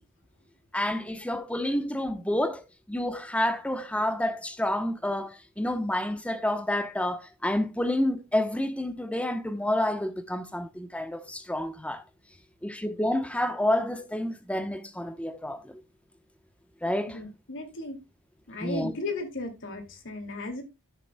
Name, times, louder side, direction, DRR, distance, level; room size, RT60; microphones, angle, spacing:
voice 1, 0.7-2.6 2.9-12.0 12.6-15.8 16.8-17.2 18.6-18.9, left 1 dB, 5° left, 0.9 m, -29 dB
voice 2, 17.1-18.0 18.5-20.6, left 2 dB, 60° left, 2.4 m, -35 dB
14.0 x 6.9 x 2.2 m
head